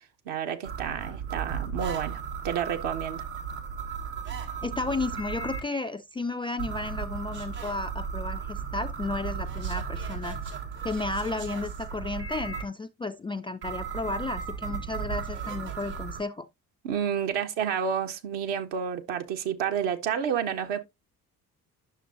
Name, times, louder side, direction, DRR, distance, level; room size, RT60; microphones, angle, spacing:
voice 1, 0.2-3.2 16.8-20.8, right 8 dB, 60° right, 1.2 m, -30 dB
sound 1, 0.6-5.6 6.6-12.6 13.6-16.2, right 6 dB, 80° right, 1.8 m, -35 dB
voice 2, 4.6-10.4 10.8-16.5, left 3 dB, 10° left, 0.3 m, -33 dB
9.8 x 6.6 x 2.5 m
figure-of-eight pair, 45°, 48 cm